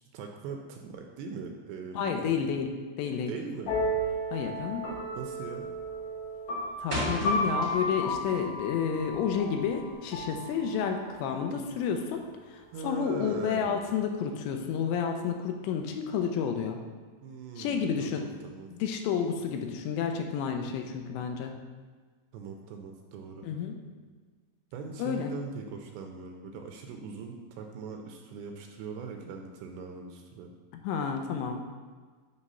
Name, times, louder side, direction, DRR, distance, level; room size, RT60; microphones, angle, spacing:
voice 1, 0.1-2.3 3.3-3.7 5.2-5.7 12.7-13.9 17.2-18.7 22.3-23.5 24.7-30.5, right 5 dB, 80° right, 3 dB, 2.6 m, -41 dB
voice 2, 2.0-2.7 3.0-3.3 4.3-4.9 6.8-12.2 12.5-16.8 17.6-18.3 18.7-21.6 23.4-23.8 25.0-25.3 30.8-31.6, left 7 dB, 85° left, 4 dB, 2.8 m, -30 dB
sound 1, 3.6-11.2, equal, 65° left, 2.4 m, -33 dB
sound 2, 3.9-4.1 4.3-4.7 5.0-5.5 5.8-8.1 8.5-9.9, equal, 30° right, 1.0 m, -36 dB
8.4 x 3.2 x 5.4 m, 1.5 s
omnidirectional pair, 5.1 m